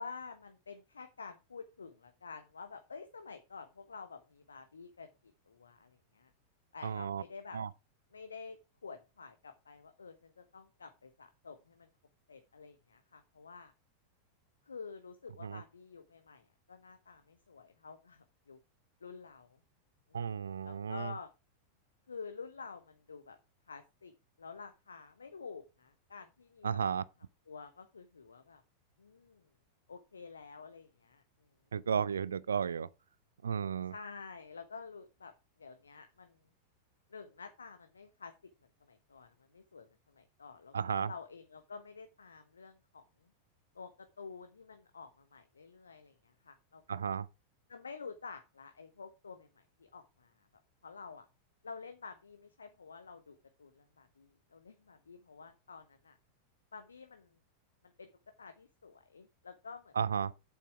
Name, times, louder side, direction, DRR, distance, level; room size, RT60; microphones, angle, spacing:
voice 1, 0.0-6.3 6.7-7.6 8.1-11.9 12.3-13.7 14.6-18.6 19.0-19.6 20.1-20.3 20.6-21.3 22.1-23.4 23.7-27.0 27.5-28.6 29.0-29.5 29.9-31.5 33.9-35.3 35.6-36.4 37.1-38.3 38.8-43.3 43.7-47.0 47.7-50.5 50.8-51.2 51.6-56.2 56.7-57.4 58.0-58.1 58.4-59.9, left 5 dB, 75° left, 1.1 m, -50 dB
voice 2, 6.8-7.2 7.5-7.7 15.4-15.6 20.1-21.1 26.6-27.0 31.7-32.9 33.4-33.9 40.7-41.1 46.9-47.3 60.0-60.3, right 7 dB, 70° right, 0.5 m, -33 dB
8.7 x 7.4 x 4.8 m
figure-of-eight pair, 90°, 0 cm